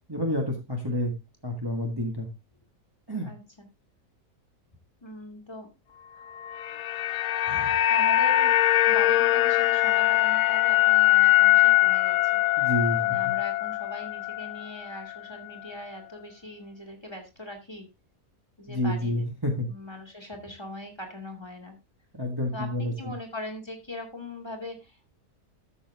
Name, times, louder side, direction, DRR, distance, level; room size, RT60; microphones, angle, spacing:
voice 1, 0.1-1.1 1.4-2.3 3.1-3.3 12.6-13.3 18.7-19.7 22.2-23.1, left 1 dB, 15° right, 1 dB, 1.6 m, -29 dB
voice 2, 3.2-3.7 5.0-5.7 6.1-6.6 7.4-8.5 8.9-12.4 13.0-17.9 18.6-19.2 19.7-21.8 22.5-25.1, left 1 dB, 15° left, 4 dB, 2.4 m, -41 dB
sound 1, 6.4-14.7 14.9-15.1, left 16 dB, 70° left, 1.0 m, -22 dB
13.0 x 6.9 x 3.5 m, 0.26 s
omnidirectional pair, 1.6 m